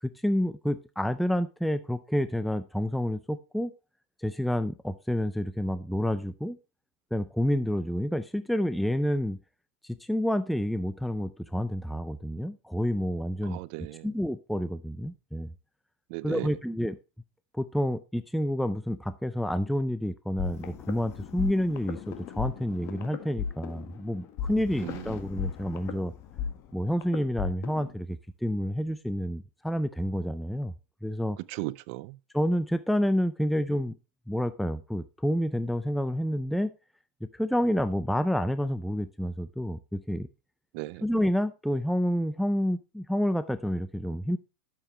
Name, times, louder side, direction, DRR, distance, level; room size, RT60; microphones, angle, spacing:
voice 1, 0.0-3.7 4.2-6.6 7.1-9.4 9.8-13.6 14.0-15.5 16.2-17.0 17.5-26.1 26.7-30.7 31.0-31.4 32.3-34.0 34.3-36.7 37.2-40.3 41.0-44.4, equal, ahead, 0.4 m, -29 dB
voice 2, 13.4-14.1 16.1-16.5 24.8-25.1 31.5-32.2 40.7-41.0, right 20 dB, 55° right, 0.6 m, -36 dB
sound 1, 20.4-27.9, left 7 dB, 45° left, 1.6 m, -37 dB
11.5 x 7.2 x 3.2 m
supercardioid pair, 130°, 7 cm